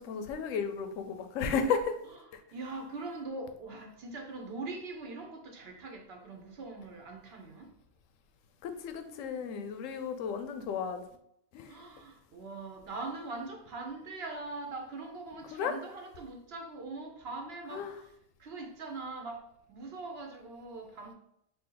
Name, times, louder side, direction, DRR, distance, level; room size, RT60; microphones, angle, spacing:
voice 1, 0.0-2.0 8.6-11.0 11.5-11.7 15.5-15.7 17.7-18.0, left 6 dB, 85° left, 8 dB, 0.9 m, -33 dB
voice 2, 2.5-7.7 11.7-18.1 18.4-21.1, right 3 dB, 60° right, 3 dB, 0.9 m, -42 dB
4.0 x 2.7 x 3.8 m, 0.73 s
omnidirectional pair, 1.3 m